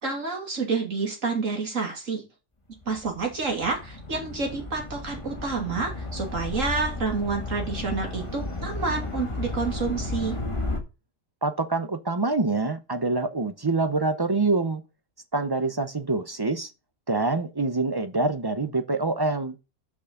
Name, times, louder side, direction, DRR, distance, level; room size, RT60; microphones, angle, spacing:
voice 1, 0.0-2.2 2.9-10.4, right 4 dB, 85° right, 3.3 m, -29 dB
sound 1, 2.8-10.8, left 2 dB, 25° left, 1.6 m, -33 dB
voice 2, 11.4-14.8 15.3-16.7 17.1-19.6, right 3 dB, 25° right, 0.5 m, -25 dB
6.2 x 6.1 x 6.8 m
omnidirectional pair, 1.3 m